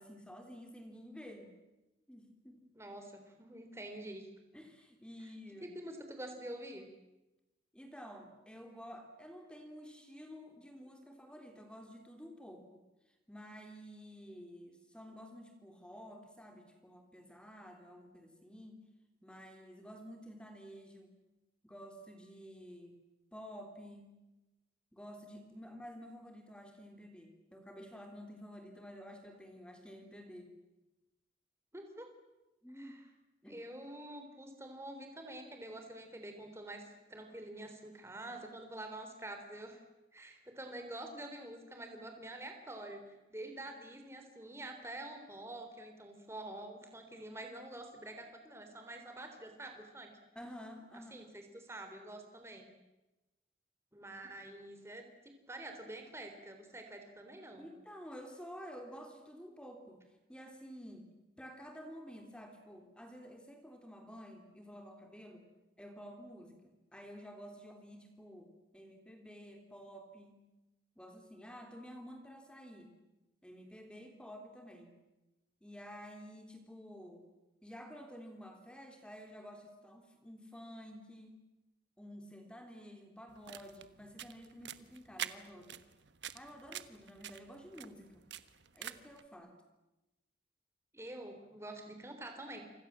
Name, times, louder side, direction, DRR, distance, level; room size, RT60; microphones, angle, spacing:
voice 1, 0.0-1.5 2.1-2.6 4.5-5.7 7.7-12.8 13.3-18.8 19.2-21.1 21.6-23.0 23.3-24.2 24.9-30.6 32.6-33.1 33.4-33.6 50.3-51.3 57.6-60.0 60.3-61.1 61.4-65.5 65.8-70.4 71.0-72.9 73.4-75.0 75.6-77.3 77.6-81.4 82.0-85.8 86.3-88.3 88.7-89.6, equal, 5° left, 4 dB, 3.3 m, -51 dB
voice 2, 2.7-4.3 5.6-6.9 31.7-32.1 32.7-33.0 33.4-39.8 40.1-50.1 51.1-52.7 53.9-57.7 90.9-92.6, right 1 dB, 15° right, 5 dB, 3.7 m, -47 dB
sound 1, 83.3-89.2, right 9 dB, 85° right, 1.3 m, -47 dB
29.0 x 26.0 x 7.5 m, 1.0 s
head